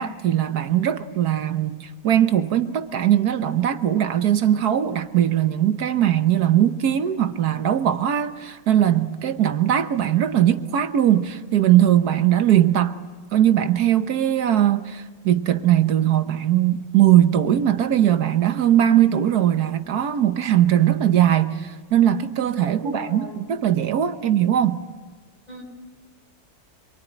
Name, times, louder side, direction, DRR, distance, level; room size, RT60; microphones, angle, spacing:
voice 1, 0.0-12.9 13.3-24.8, right 11 dB, 85° right, 1.6 m, -20 dB
voice 2, 22.7-23.4 25.5-25.6, right 1 dB, 25° left, 6.1 m, -36 dB
26.5 x 23.5 x 9.4 m
omnidirectional pair, 1.6 m